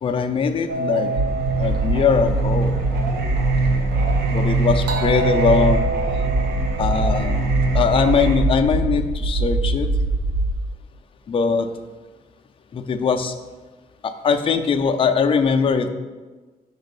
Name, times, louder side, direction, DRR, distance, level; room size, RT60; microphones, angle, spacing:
voice 1, 0.0-1.1 1.6-2.7 4.3-5.8 6.8-9.9 11.3-11.7 12.7-13.3 14.0-15.9, left 5 dB, 35° left, 6 dB, 0.4 m, -21 dB
Singing, 0.7-8.4, right 3 dB, 90° right, 0.9 m, -24 dB
sound 1, 1.2-10.5, right 2 dB, 45° right, 0.5 m, -23 dB
5.1 x 4.0 x 5.3 m, 1.3 s
cardioid pair, 160°, 17 cm